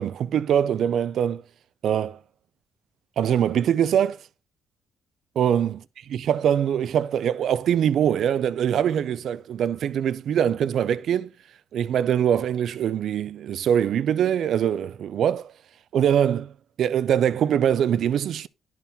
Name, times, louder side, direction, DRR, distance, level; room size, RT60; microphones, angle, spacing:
voice 1, 0.0-1.4 1.8-2.2 3.2-4.2 5.4-5.8 6.1-11.3 11.7-15.5 15.9-16.5 16.8-18.5, right 9 dB, 70° right, 0.5 m, -23 dB
10.5 x 4.7 x 3.4 m
cardioid pair, 90°, 0 cm